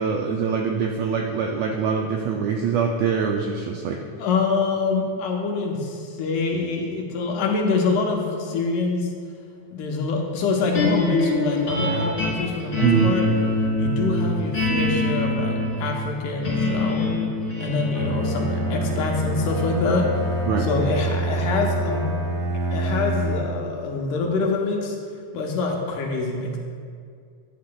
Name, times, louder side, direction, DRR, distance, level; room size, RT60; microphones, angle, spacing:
voice 1, 0.0-4.0 12.8-13.1 20.5-20.7, right 6 dB, 80° right, 1 dB, 1.5 m, -23 dB
voice 2, 4.2-9.1 9.7-13.3 13.8-17.3 17.6-20.1 20.6-22.1 22.7-25.0 25.3-26.6, left 4 dB, 80° left, 0 dB, 2.6 m, -25 dB
sound 1, 10.7-23.0, left 2 dB, 30° left, 2.6 m, -26 dB
Bowed string instrument, 17.9-23.6, right 1 dB, 60° right, 2.8 m, -26 dB
10.5 x 9.5 x 2.3 m, 2.2 s
omnidirectional pair, 3.6 m